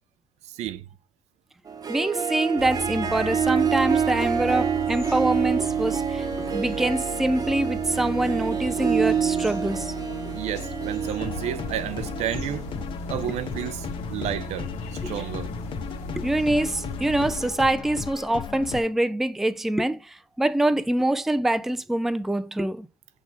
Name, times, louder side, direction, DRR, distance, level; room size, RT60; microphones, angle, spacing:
voice 1, 0.4-0.9 10.3-12.7 13.1-15.5, right 11 dB, 70° right, 0.6 m, -32 dB
Harp, 1.7-12.9, right 7 dB, 30° right, 0.9 m, -27 dB
voice 2, 1.9-9.9 13.3-13.4 15.0-15.1 16.2-22.9, right 1 dB, 5° right, 0.4 m, -25 dB
sound 1, 2.6-17.5, equal, 80° left, 1.6 m, -37 dB
sound 2, 11.0-18.8, left 7 dB, 45° left, 0.7 m, -36 dB
6.3 x 3.0 x 5.6 m
cardioid pair, 110°, 12 cm